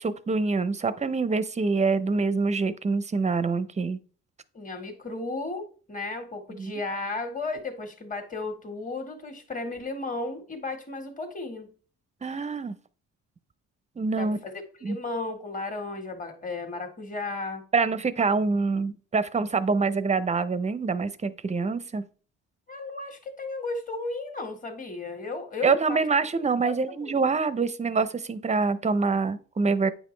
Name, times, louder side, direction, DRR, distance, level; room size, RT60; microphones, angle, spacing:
voice 1, 0.0-4.0 6.6-6.7 12.2-12.7 14.0-14.4 14.8-15.0 17.7-22.0 25.6-29.9, right 4 dB, 25° right, 0.6 m, -25 dB
voice 2, 4.5-11.7 14.1-14.5 14.9-17.6 22.7-26.0 26.6-27.2, left 3 dB, 25° left, 1.7 m, -34 dB
8.8 x 5.1 x 3.3 m
cardioid pair, 90°, 30 cm